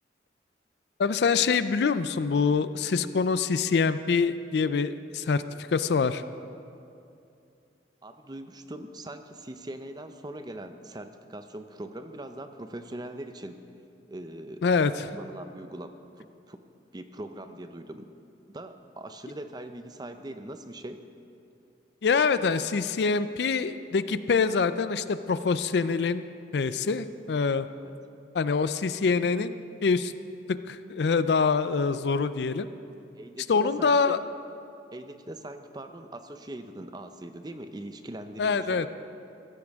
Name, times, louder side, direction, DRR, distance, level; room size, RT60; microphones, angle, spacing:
voice 1, 1.0-6.2 14.6-15.1 22.0-26.3 26.5-27.7 28.3-29.5 29.8-30.1 30.7-32.7 33.5-34.2 38.4-38.9, left 5 dB, 70° left, 13 dB, 0.4 m, -25 dB
voice 2, 8.0-13.7 14.1-14.6 15.1-16.6 16.9-18.1 18.5-21.0 27.8-27.9 33.1-34.2 34.9-38.9, right 1 dB, 25° right, 8 dB, 0.6 m, -41 dB
15.5 x 13.5 x 3.6 m, 2.6 s
head